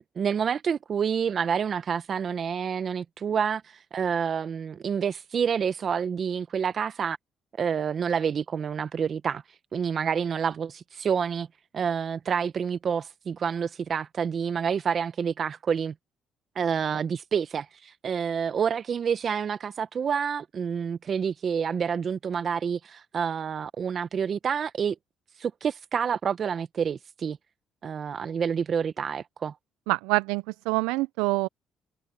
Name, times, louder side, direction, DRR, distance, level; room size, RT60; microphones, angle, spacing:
voice 1, 0.2-7.2 7.6-9.4 9.7-11.5 11.7-15.9 16.6-24.9 25.4-27.4 27.8-29.6, right 7 dB, 50° right, 0.8 m, -28 dB
voice 2, 29.9-31.5, right 23 dB, 90° right, 0.4 m, -26 dB
supercardioid pair, 65°, 0 cm